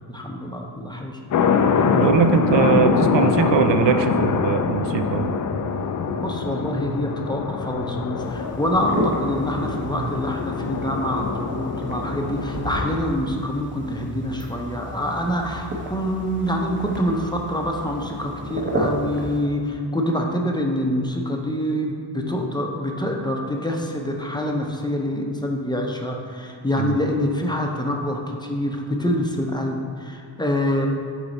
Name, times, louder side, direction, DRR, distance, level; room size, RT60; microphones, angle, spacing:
voice 1, 0.1-1.2 6.2-30.9, equal, 10° left, 1 dB, 0.7 m, -26 dB
sound 1, 1.3-12.9, left 6 dB, 45° left, 0.4 m, -24 dB
voice 2, 1.9-5.4 9.9-10.1 26.7-27.0, right 7 dB, 80° right, 8 dB, 0.5 m, -21 dB
sound 2, 8.2-19.4, equal, 25° right, 1.0 m, -32 dB
6.9 x 4.0 x 4.0 m, 2.3 s
cardioid pair, 85°, 43 cm